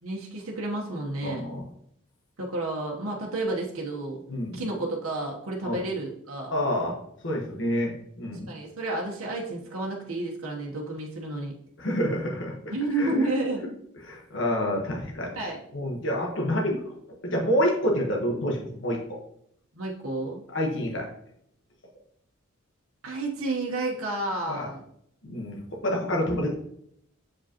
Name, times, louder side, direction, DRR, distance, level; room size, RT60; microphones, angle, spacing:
voice 1, 0.0-1.4 2.4-4.2 4.5-6.5 8.5-11.5 12.7-13.7 15.3-15.6 19.7-20.4 23.0-24.8, right 2 dB, 85° right, -2 dB, 1.1 m, -31 dB
voice 2, 1.2-1.6 4.3-4.6 5.6-5.8 6.5-7.0 7.2-8.5 11.8-13.3 14.0-16.8 17.2-19.2 20.5-21.1 24.5-24.7 25.2-26.5, equal, 60° left, 0 dB, 1.2 m, -28 dB
7.4 x 5.1 x 2.9 m, 0.71 s
head